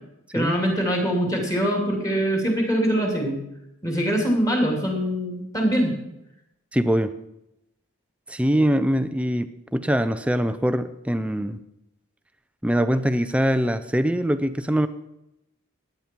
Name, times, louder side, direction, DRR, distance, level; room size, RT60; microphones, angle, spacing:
voice 1, 0.3-3.4 3.8-5.9, equal, 15° left, 1 dB, 2.7 m, -23 dB
voice 2, 6.7-7.1 8.3-11.6 12.6-14.9, equal, 5° right, 11 dB, 0.5 m, -23 dB
15.5 x 10.5 x 4.5 m, 0.87 s
head